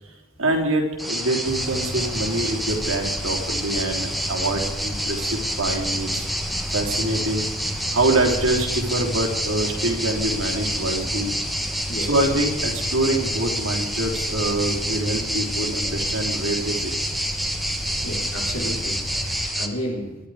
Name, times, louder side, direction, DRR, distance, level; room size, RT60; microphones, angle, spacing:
voice 1, 0.4-6.3 6.7-7.5 7.9-11.3 12.0-16.9, right 2 dB, 85° right, 1 dB, 3.4 m, -25 dB
sound 1, 1.0-19.7, equal, ahead, 1.3 m, -28 dB
sound 2, 1.5-19.5, equal, 30° left, 1.1 m, -34 dB
voice 2, 18.0-20.2, equal, 85° left, 1 dB, 4.0 m, -32 dB
23.0 x 11.5 x 5.0 m, 1.2 s
head